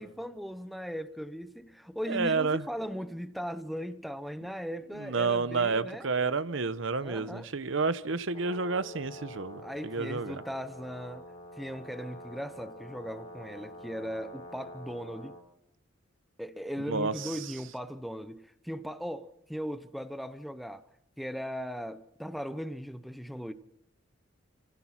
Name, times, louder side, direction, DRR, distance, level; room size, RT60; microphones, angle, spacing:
voice 1, 0.0-6.1 7.0-7.5 9.6-15.4 16.4-20.8 21.2-23.5, equal, ahead, 0.7 m, -38 dB
voice 2, 2.1-2.6 5.0-10.4 16.9-17.1, right 4 dB, 65° right, 0.9 m, -30 dB
Brass instrument, 8.3-15.4, left 1 dB, 30° left, 3.7 m, -47 dB
29.5 x 16.0 x 5.9 m
head